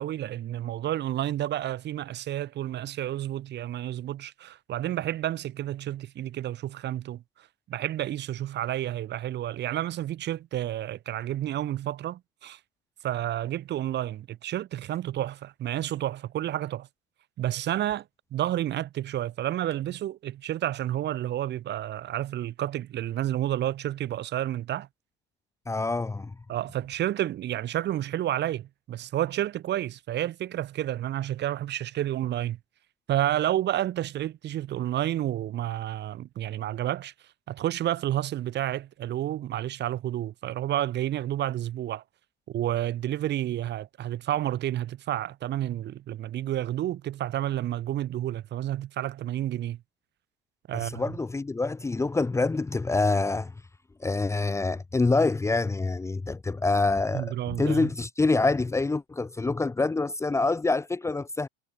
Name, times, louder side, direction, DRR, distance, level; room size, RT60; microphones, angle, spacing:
voice 1, 0.0-7.2 7.7-12.6 13.0-16.9 17.4-18.1 18.3-24.9 26.5-32.6 33.1-37.1 37.5-42.0 42.5-49.8 50.7-51.0 57.1-57.9, right 12 dB, 35° right, 3.2 m, -30 dB
voice 2, 25.7-26.3 50.7-53.5 54.0-61.5, left 3 dB, 10° left, 1.6 m, -26 dB
supercardioid pair, 120°, 29 cm